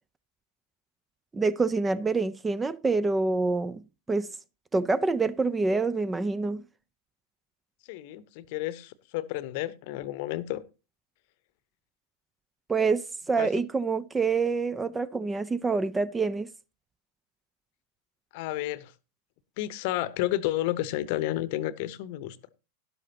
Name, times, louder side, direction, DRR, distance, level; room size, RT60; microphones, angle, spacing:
voice 1, 1.3-4.3 4.7-6.6 12.7-16.5, right 4 dB, 15° right, 0.5 m, -26 dB
voice 2, 7.9-10.6 13.4-13.5 18.3-18.9 19.6-22.4, left 15 dB, 50° left, 0.9 m, -31 dB
12.5 x 11.5 x 2.8 m
figure-of-eight pair, 90°, 0 cm